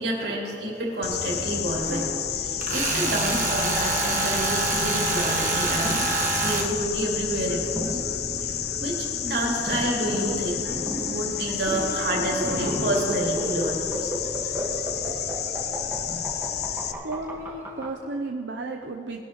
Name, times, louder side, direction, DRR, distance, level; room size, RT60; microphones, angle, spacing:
voice 1, 0.0-5.9 6.4-8.0 8.4-14.1 16.0-16.3, right 1 dB, 60° right, -3 dB, 2.8 m, -29 dB
sound 1, 1.0-16.9, left 8 dB, 60° left, 0.6 m, -30 dB
Tools, 2.6-6.7, right 4 dB, 45° right, 1.2 m, -26 dB
sound 2, 5.4-17.9, right 1 dB, 15° right, 1.5 m, -34 dB
voice 2, 17.0-19.2, right 2 dB, 80° right, 2 dB, 0.7 m, -33 dB
20.0 x 11.5 x 3.1 m, 2.7 s
head